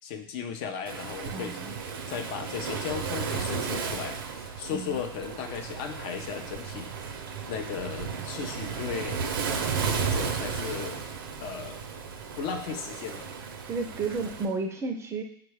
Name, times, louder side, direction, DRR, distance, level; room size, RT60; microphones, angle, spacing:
voice 1, 0.0-9.2 9.8-11.0 11.4-11.8 12.4-13.3, left 7 dB, 50° left, 6 dB, 0.5 m, -36 dB
Waves surf, 0.9-14.5, right 6 dB, 70° right, 0.5 m, -34 dB
voice 2, 1.3-1.7 4.7-5.0 13.7-15.2, right 4 dB, 20° right, 5 dB, 0.5 m, -32 dB
4.6 x 2.2 x 3.2 m, 0.72 s
hypercardioid pair, 105°, 12 cm